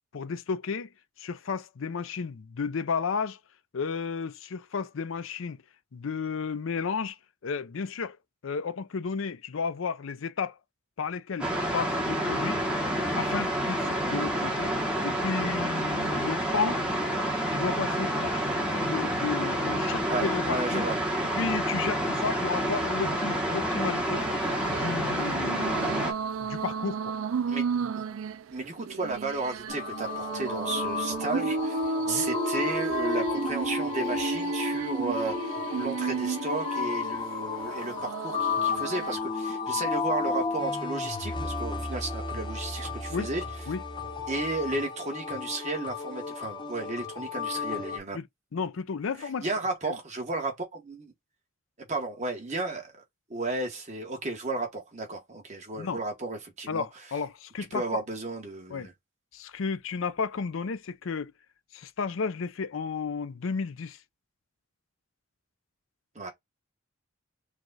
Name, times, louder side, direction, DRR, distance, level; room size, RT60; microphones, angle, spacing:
voice 1, 0.1-0.9 1.2-3.4 3.7-5.6 5.9-7.2 7.4-8.2 8.4-10.6 11.0-12.6 13.2-14.7 15.0-16.8 17.5-20.9 21.3-24.3 24.7-26.1 26.4-27.2 32.1-32.3 43.1-43.3 43.7-43.8 48.1-48.2 48.5-49.5 49.9-50.0 55.8-56.0 56.7-58.0 58.7-58.9 59.3-61.3 61.7-64.0, left 5 dB, 70° left, 0.5 m, -33 dB
sound 1, 11.4-26.1, equal, 5° right, 1.0 m, -28 dB
voice 2, 20.1-20.9 27.5-28.0 28.5-31.8 32.1-43.4 44.3-48.2 49.2-51.1 51.8-53.0 53.3-56.8 57.7-58.9 66.1-66.3, right 3 dB, 35° right, 1.4 m, -33 dB
sound 2, 24.2-39.2, right 4 dB, 80° right, 0.4 m, -33 dB
sound 3, 29.7-48.0, left 5 dB, 25° left, 1.0 m, -33 dB
4.7 x 2.4 x 4.0 m
head